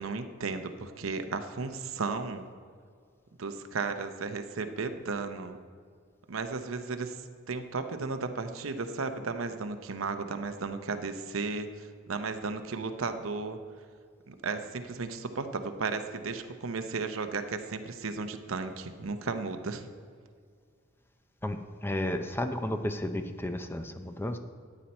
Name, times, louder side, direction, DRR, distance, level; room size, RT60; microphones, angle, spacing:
voice 1, 0.0-2.5 3.4-5.6 6.3-13.6 14.3-19.9, right 4 dB, 85° right, 8 dB, 0.8 m, -34 dB
voice 2, 21.4-24.4, left 1 dB, 10° left, 8 dB, 0.5 m, -33 dB
14.0 x 9.1 x 4.3 m, 2.1 s
head